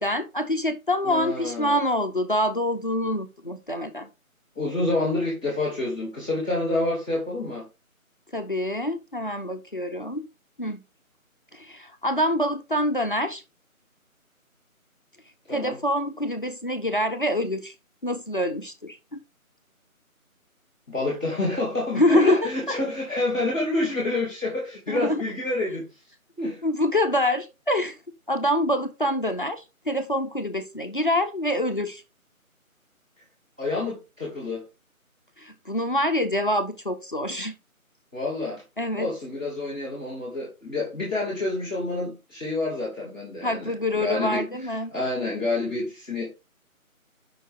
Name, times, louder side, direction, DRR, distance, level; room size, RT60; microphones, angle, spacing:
voice 1, 0.0-4.1 8.3-10.3 10.6-10.8 11.5-13.4 15.5-17.7 18.0-19.2 21.9-22.8 24.9-25.2 26.6-28.0 28.3-32.0 35.4-37.5 38.8-39.1 43.4-44.9, left 1 dB, 35° left, 0.7 m, -26 dB
voice 2, 1.0-1.8 4.5-7.7 15.5-15.8 20.9-25.9 26.4-26.6 33.6-34.6 38.1-38.6 38.9-46.4, left 2 dB, 5° right, 1.3 m, -28 dB
7.7 x 5.6 x 3.6 m
figure-of-eight pair, 170°, 43 cm